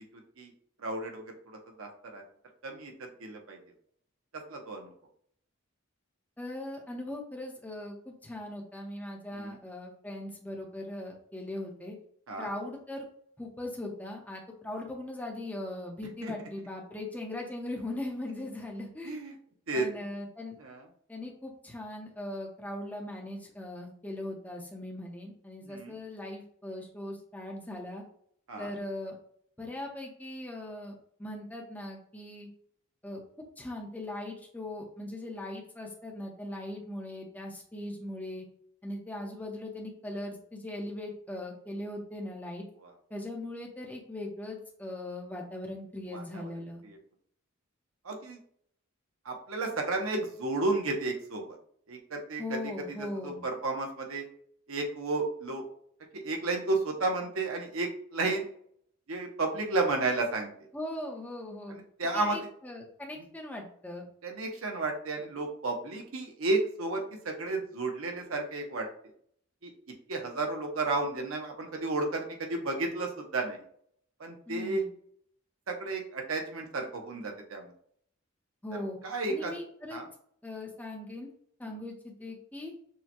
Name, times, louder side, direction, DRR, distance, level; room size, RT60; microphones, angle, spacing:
voice 1, 0.8-2.2 2.6-3.6 4.5-4.9 9.3-9.6 12.3-12.5 16.2-16.3 19.0-19.3 19.7-19.9 20.6-20.8 25.7-25.9 28.5-28.7 42.8-42.9 46.1-46.5 48.0-48.4 49.2-51.6 51.9-52.4 53.2-54.2 54.7-55.6 56.1-58.4 59.1-60.5 62.0-62.4 64.2-68.9 69.6-69.7 70.1-73.6 74.2-74.8 75.7-77.7 79.0-79.5 79.9-80.1 81.6-81.8, right 2 dB, 90° right, 2 dB, 0.8 m, -32 dB
voice 2, 6.4-12.0 12.4-13.1 13.4-19.1 19.7-20.6 21.1-28.0 28.6-29.2 29.6-32.5 33.0-33.2 33.6-38.5 38.8-42.6 43.1-46.8 52.4-53.4 60.7-61.7 62.1-64.1 74.5-74.9 78.6-79.0 79.3-80.0 80.4-81.3 81.6-82.7, left 1 dB, 10° left, 0 dB, 0.8 m, -39 dB
6.4 x 2.2 x 2.9 m, 0.64 s
head